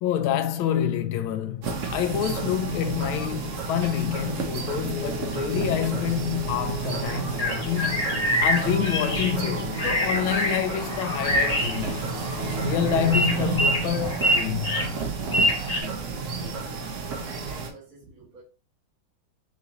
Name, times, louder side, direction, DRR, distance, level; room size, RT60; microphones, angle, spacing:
voice 1, 0.0-12.0 12.6-14.9, left 10 dB, 80° left, 1.4 m, -27 dB
sound 1, 1.6-17.7, right 4 dB, 65° right, 0.7 m, -31 dB
sound 2, 4.9-13.9, left 6 dB, 60° left, 1.8 m, -40 dB
sound 3, 7.1-15.8, equal, 20° left, 1.2 m, -26 dB
voice 2, 16.4-18.4, right 2 dB, 45° right, 1.6 m, -49 dB
6.0 x 2.6 x 2.8 m
omnidirectional pair, 2.3 m